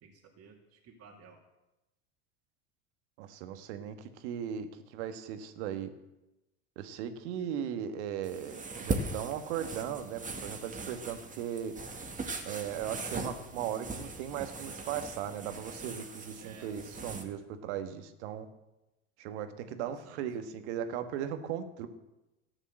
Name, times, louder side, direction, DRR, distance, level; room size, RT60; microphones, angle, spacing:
voice 1, 0.0-1.4 16.4-16.7 19.8-20.2, right 5 dB, 40° right, 0 dB, 2.4 m, -54 dB
voice 2, 3.2-5.9 6.7-11.7 12.4-18.5 19.2-21.9, right 9 dB, 70° right, 9 dB, 1.5 m, -37 dB
sound 1, 8.2-17.2, right 3 dB, 20° right, 2.0 m, -39 dB
13.5 x 9.0 x 7.7 m, 0.98 s
hypercardioid pair, 90°, 35 cm